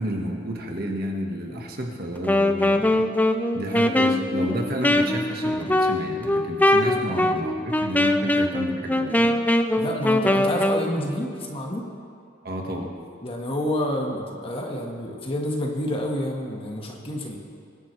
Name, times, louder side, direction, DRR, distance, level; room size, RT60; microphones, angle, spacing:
voice 1, 0.0-3.1 3.5-9.4 12.4-12.9, equal, 50° right, 1 dB, 1.6 m, -31 dB
Wind instrument woodwind instrument, 2.2-10.9, left 1 dB, 10° left, 0.5 m, -22 dB
voice 2, 9.7-11.9 13.2-17.4, left 1 dB, 30° left, 0 dB, 1.5 m, -29 dB
21.5 x 11.0 x 3.3 m, 2.5 s
head